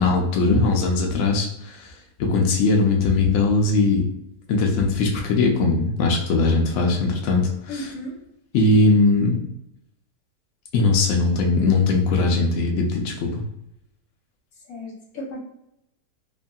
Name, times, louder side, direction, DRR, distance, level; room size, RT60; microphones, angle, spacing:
voice 1, 0.0-4.1 4.5-7.9 8.5-9.4 10.7-13.4, left 3 dB, 75° left, 0 dB, 0.7 m, -20 dB
voice 2, 7.7-8.1 14.7-15.4, left 1 dB, 60° left, -2 dB, 1.2 m, -34 dB
2.9 x 2.6 x 2.2 m, 0.82 s
omnidirectional pair, 1.8 m